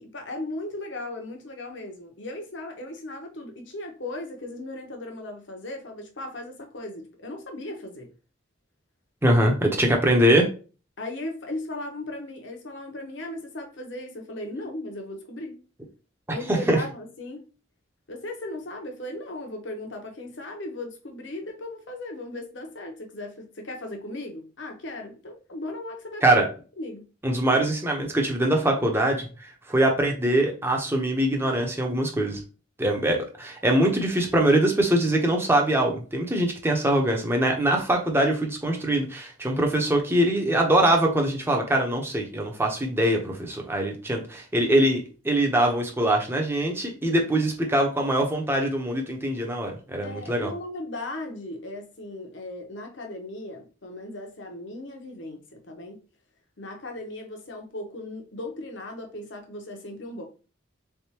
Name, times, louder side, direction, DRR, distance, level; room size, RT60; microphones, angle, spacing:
voice 1, 0.0-8.1 11.0-15.6 16.3-17.4 18.1-26.5 26.8-27.0 50.0-56.0 56.6-60.2, left 1 dB, 65° left, 1.0 m, -37 dB
voice 2, 9.2-10.5 16.5-16.8 26.2-26.4 27.2-32.4 32.8-50.5, right 1 dB, 10° right, 0.8 m, -23 dB
3.8 x 3.5 x 2.9 m
head